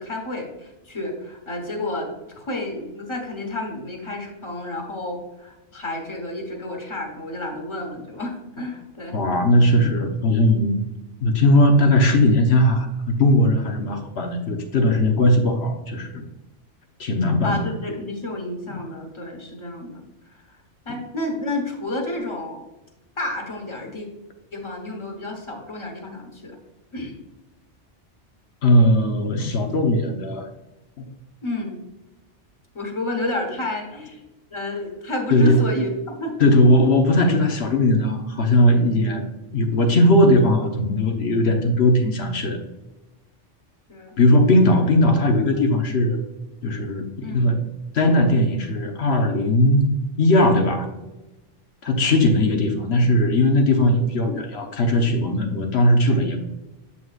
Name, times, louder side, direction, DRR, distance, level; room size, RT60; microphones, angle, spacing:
voice 1, 0.0-2.1 2.4-9.2 17.4-20.6 20.8-22.6 23.2-24.1 24.5-26.6 26.9-27.1 31.4-31.8 32.7-34.2 34.5-35.9 36.2-36.3 36.8-36.9 43.9-44.1 47.2-47.5, left 2 dB, 25° left, 2 dB, 1.2 m, -30 dB
voice 2, 9.1-10.8 11.2-16.3 17.0-17.6 28.6-30.5 35.3-35.6 36.4-39.2 39.5-42.6 44.2-46.2 46.6-47.6 47.9-49.8 50.2-50.9 51.8-56.4, left 1 dB, 65° left, 5 dB, 1.2 m, -18 dB
7.6 x 5.9 x 2.4 m, 1.0 s
omnidirectional pair, 1.2 m